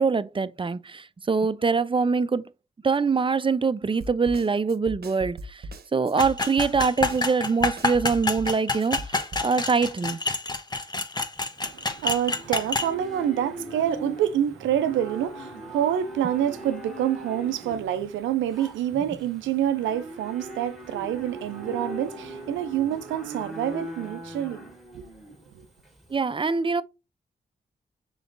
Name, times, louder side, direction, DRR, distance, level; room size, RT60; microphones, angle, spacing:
voice 1, 0.0-2.5 2.8-5.7 5.9-10.2 26.1-26.8, right 5 dB, 25° right, 0.5 m, -24 dB
Snare drum, 4.0-9.5, right 1 dB, 55° right, 0.9 m, -39 dB
sound 1, 6.2-12.9, left 3 dB, 20° left, 0.8 m, -28 dB
Livestock farm animals working animals, 11.4-26.1, right 1 dB, ahead, 1.8 m, -40 dB
voice 2, 11.6-24.7 24.9-25.1, right 10 dB, 90° right, 0.5 m, -27 dB
5.1 x 4.0 x 2.5 m
supercardioid pair, 45°, 19 cm